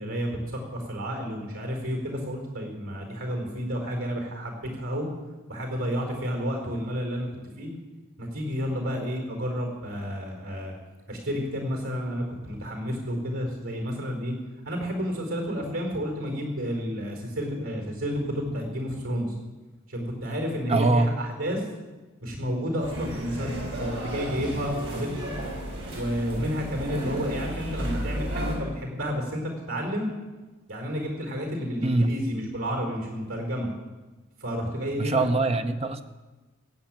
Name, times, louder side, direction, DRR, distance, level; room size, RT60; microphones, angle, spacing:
voice 1, 0.0-5.1 5.5-7.3 7.6-7.7 8.2-10.7 11.1-14.3 14.6-19.3 19.9-21.6 22.2-25.4 25.9-30.1 30.7-33.7 34.4-35.3, equal, 75° right, 3 dB, 4.8 m, -31 dB
voice 2, 20.7-21.1 31.8-32.1 35.0-36.0, right 2 dB, 30° right, 9 dB, 0.7 m, -23 dB
sound 1, 22.8-28.5, equal, 55° right, 5.1 m, -33 dB
16.0 x 7.8 x 9.1 m, 1.2 s
head